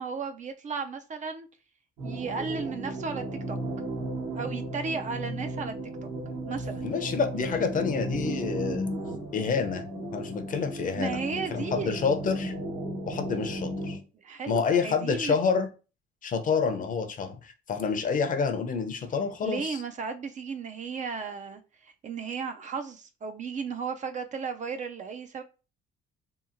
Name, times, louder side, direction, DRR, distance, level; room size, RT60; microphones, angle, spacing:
voice 1, 0.0-1.5 2.0-3.6 4.4-5.7 6.0-6.1 6.5-7.0 10.9-11.9 14.1-15.4 19.4-25.4, right 5 dB, 35° right, 0.4 m, -35 dB
sound 1, 2.0-14.0, right 1 dB, 75° right, 1.2 m, -35 dB
voice 2, 6.8-8.9 9.3-9.8 10.1-12.5 13.1-14.0 14.5-15.7 16.2-19.8, left 5 dB, 40° left, 0.5 m, -28 dB
2.7 x 2.7 x 2.5 m
cardioid pair, 90°, 21 cm